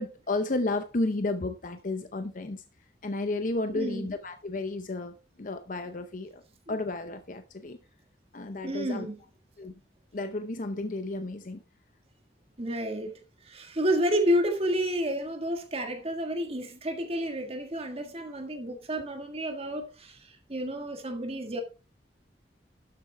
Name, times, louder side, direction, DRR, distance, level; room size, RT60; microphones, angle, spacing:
voice 1, 0.0-2.6 3.0-6.4 6.7-7.8 8.3-9.1 9.6-9.8 10.1-11.6, left 2 dB, 50° left, 0.7 m, -32 dB
voice 2, 3.7-4.1 6.7-6.8 8.6-9.2 12.6-13.1 13.4-21.6, equal, 35° right, 1.7 m, -30 dB
12.0 x 7.9 x 3.4 m
head